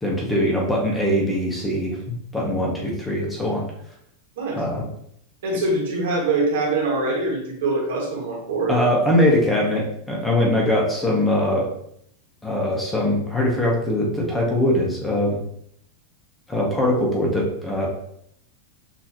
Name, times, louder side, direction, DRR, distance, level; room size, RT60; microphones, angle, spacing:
voice 1, 0.0-3.6 4.6-4.9 8.7-11.7 12.4-15.4 16.5-17.9, left 1 dB, 10° left, -2 dB, 0.8 m, -22 dB
voice 2, 5.4-8.8, right 2 dB, 80° right, -1 dB, 1.6 m, -23 dB
6.3 x 2.7 x 2.9 m, 0.71 s
supercardioid pair, 170°, 0 cm